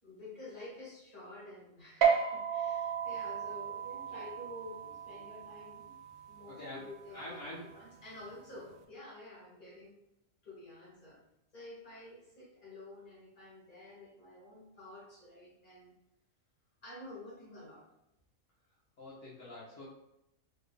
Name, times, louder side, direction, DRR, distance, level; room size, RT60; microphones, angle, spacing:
voice 1, 0.0-6.0 6.3-10.0 10.4-11.2 11.5-15.9 16.8-17.8, left 1 dB, 35° left, -6 dB, 1.8 m, -50 dB
sound 1, 2.0-8.8, right 7 dB, 80° right, 1.0 m, -35 dB
voice 2, 6.5-6.8 7.1-7.7 19.0-19.8, left 1 dB, 70° left, -8 dB, 1.3 m, -45 dB
4.4 x 3.3 x 2.2 m, 0.83 s
omnidirectional pair, 1.4 m